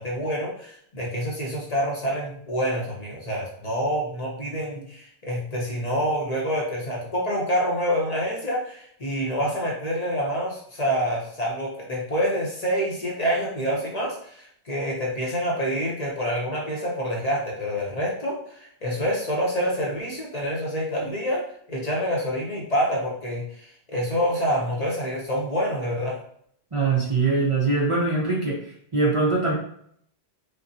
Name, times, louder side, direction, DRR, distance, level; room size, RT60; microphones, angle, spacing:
voice 1, 0.0-26.2, equal, 40° left, -3 dB, 0.9 m, -27 dB
voice 2, 26.7-28.6 28.9-29.5, right 3 dB, 35° right, -4 dB, 0.7 m, -22 dB
5.2 x 2.1 x 2.7 m, 0.65 s
omnidirectional pair, 1.1 m